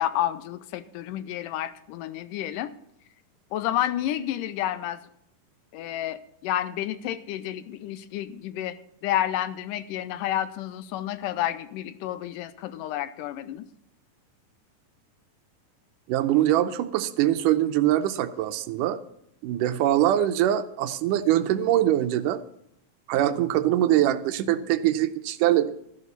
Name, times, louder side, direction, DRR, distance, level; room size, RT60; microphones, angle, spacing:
voice 1, 0.0-2.7 3.5-5.0 5.7-8.8 9.0-13.7, left 12 dB, 85° left, 13 dB, 2.3 m, -30 dB
voice 2, 16.1-19.0 19.4-22.4 23.1-25.7, right 12 dB, 80° right, 10 dB, 2.2 m, -23 dB
13.0 x 11.0 x 4.0 m, 0.74 s
omnidirectional pair, 3.8 m